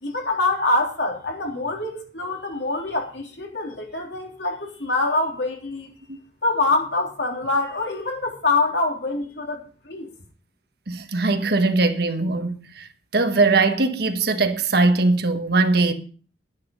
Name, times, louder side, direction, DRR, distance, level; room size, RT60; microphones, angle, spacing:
voice 1, 0.0-5.9 6.4-10.1, left 2 dB, 65° left, 3.4 m, -25 dB
voice 2, 10.9-15.9, right 3 dB, 60° right, 1.3 m, -21 dB
11.0 x 10.5 x 5.3 m
head